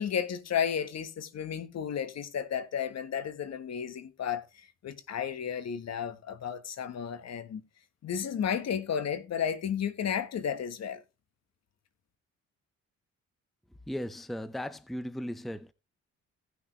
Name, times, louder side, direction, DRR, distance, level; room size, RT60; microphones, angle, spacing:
voice 1, 0.0-4.4 4.8-7.6 8.0-11.0, left 8 dB, 60° left, 1.5 m, -33 dB
voice 2, 13.9-15.7, equal, ahead, 0.7 m, -37 dB
17.0 x 6.3 x 3.3 m
cardioid pair, 90°, 30 cm